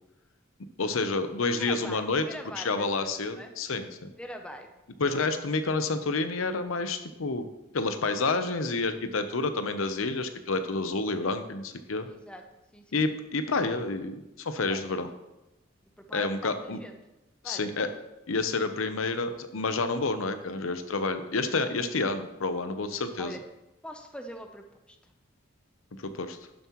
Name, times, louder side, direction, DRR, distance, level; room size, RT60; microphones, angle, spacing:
voice 1, 0.8-2.2 2.6-4.1 5.0-7.5 7.7-12.1 12.9-15.1 16.1-16.8 17.4-17.9 18.3-23.4 25.9-26.4, left 3 dB, 80° left, 9 dB, 0.8 m, -29 dB
voice 2, 1.6-3.5 4.2-4.7 8.4-8.5 12.0-12.4 12.7-13.1 14.6-15.0 16.0-17.0 17.4-17.9 23.2-23.4 23.8-25.1, equal, 5° left, 5 dB, 0.6 m, -43 dB
11.5 x 7.3 x 3.0 m, 0.98 s
head